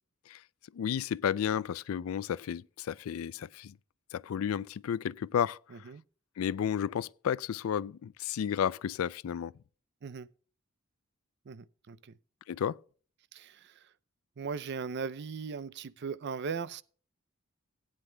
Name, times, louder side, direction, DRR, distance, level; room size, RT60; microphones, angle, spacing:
voice 1, 0.7-3.8 4.1-5.9 6.4-9.5 12.5-12.8, left 8 dB, 80° left, 0.3 m, -32 dB
voice 2, 5.7-6.0 10.0-10.3 11.5-12.2 13.3-13.9 14.4-16.8, right 5 dB, 55° right, 0.5 m, -38 dB
17.0 x 9.5 x 2.2 m
head